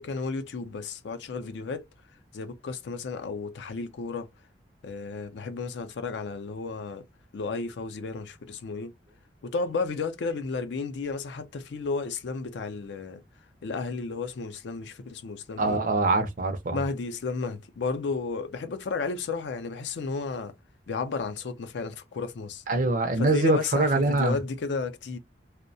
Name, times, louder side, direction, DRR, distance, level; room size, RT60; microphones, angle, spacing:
voice 1, 0.0-1.9 2.3-4.3 4.8-7.1 7.3-8.9 9.4-13.2 13.6-15.8 16.7-20.5 20.9-22.6 23.2-25.2, left 4 dB, 75° left, 0.4 m, -33 dB
voice 2, 15.6-16.8 22.7-24.4, right 3 dB, 50° right, 0.5 m, -24 dB
2.6 x 2.1 x 2.6 m
head